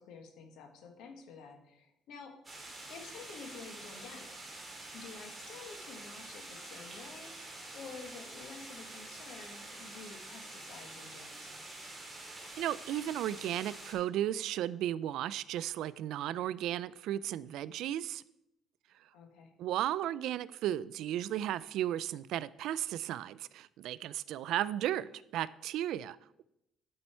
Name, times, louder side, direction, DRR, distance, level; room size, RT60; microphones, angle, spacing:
voice 1, 0.0-2.4 2.9-4.4 4.9-11.5 19.1-19.5, left 5 dB, 75° left, 1.5 m, -50 dB
sound 1, 2.4-13.9, right 2 dB, 15° right, 2.4 m, -47 dB
voice 2, 12.6-18.2 19.6-26.4, right 12 dB, 75° right, 0.3 m, -35 dB
11.5 x 5.6 x 4.4 m
cardioid pair, 145°, 0 cm